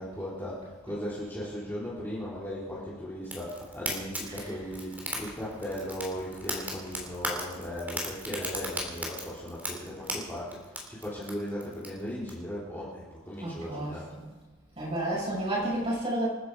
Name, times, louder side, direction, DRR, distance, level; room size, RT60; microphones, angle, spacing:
voice 1, 0.0-14.2, equal, 10° left, -8 dB, 3.4 m, -37 dB
Fire, 3.2-12.3, equal, 10° right, 3.0 m, -38 dB
voice 2, 4.2-4.8 13.4-14.3 14.8-16.3, right 1 dB, 30° right, -6 dB, 6.0 m, -32 dB
27.5 x 10.0 x 4.8 m, 1.2 s
head